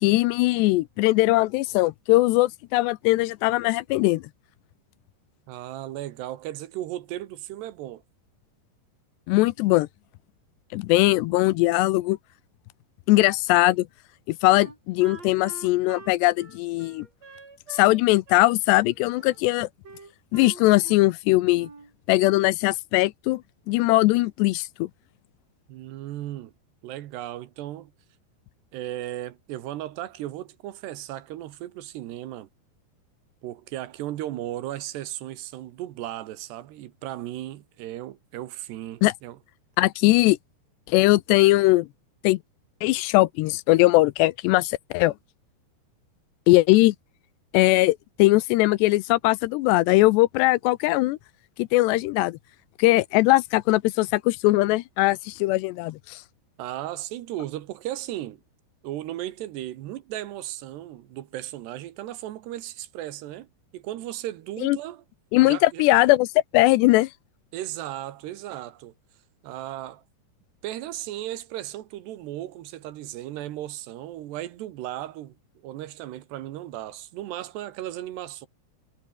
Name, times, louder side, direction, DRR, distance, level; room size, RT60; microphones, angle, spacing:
voice 1, 0.0-4.2 9.3-9.9 10.7-12.2 13.1-13.9 14.3-17.1 17.7-19.7 20.3-21.7 22.1-23.4 23.7-24.9 39.0-39.1 39.8-40.4 40.9-41.9 42.2-42.4 42.8-45.1 46.5-47.0 47.5-51.2 51.6-52.4 52.8-56.2 64.6-64.8 65.3-66.3 66.5-67.1, left 19 dB, 85° left, 2.8 m, -20 dB
voice 2, 5.5-8.0 25.7-26.5 26.8-27.9 28.7-32.5 33.4-39.4 56.6-58.4 58.8-63.5 63.7-65.0 65.4-65.8 67.5-68.9 69.4-70.0 70.6-75.4 75.6-78.5, right 14 dB, 75° right, 3.4 m, -36 dB
Wind instrument woodwind instrument, 14.5-18.0 18.3-19.4 19.8-21.1 21.4-21.9, right 4 dB, 40° right, 6.6 m, -46 dB
omnidirectional pair, 5.0 m